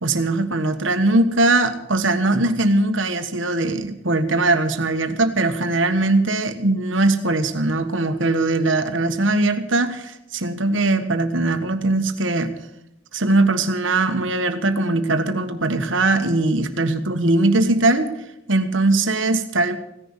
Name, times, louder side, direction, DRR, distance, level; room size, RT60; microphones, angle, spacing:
voice 1, 0.0-12.5 13.1-18.1 18.5-19.8, right 2 dB, 75° right, 8 dB, 1.5 m, -20 dB
16.5 x 10.5 x 7.3 m, 0.84 s
head